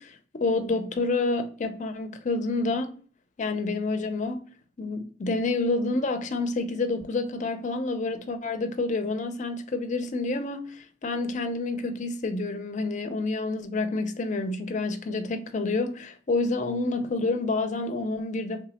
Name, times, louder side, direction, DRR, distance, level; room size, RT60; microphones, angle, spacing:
voice 1, 0.0-2.9 3.4-4.4 4.8-18.7, left 3 dB, 45° left, 0.5 m, -28 dB
3.3 x 2.1 x 4.1 m
head